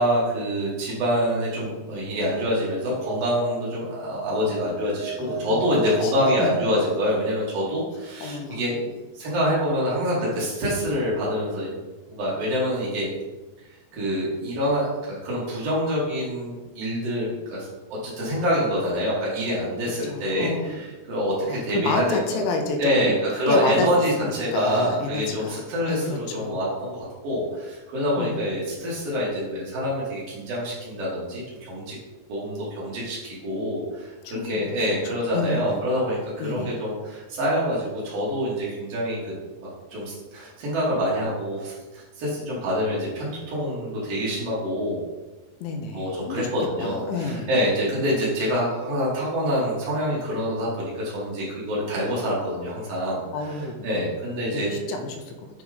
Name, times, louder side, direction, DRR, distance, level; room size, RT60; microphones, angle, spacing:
voice 1, 0.0-8.8 9.1-11.7 12.1-13.1 13.6-17.7 18.0-22.2 22.8-31.9 32.3-39.3 39.6-45.0 45.9-53.2 53.6-54.7, equal, 80° right, -7 dB, 1.3 m, -26 dB
sound 1, 2.8-7.6, right 6 dB, 65° right, 2.8 m, -36 dB
voice 2, 5.8-6.6 8.2-8.6 20.0-20.8 21.5-23.2 23.5-26.6 28.2-28.4 34.2-34.8 35.0-35.9 36.4-36.8 45.6-47.5 53.3-53.8 54.5-55.5, left 3 dB, 85° left, 5 dB, 3.0 m, -30 dB
8.0 x 3.6 x 4.8 m, 1.2 s
omnidirectional pair, 5.5 m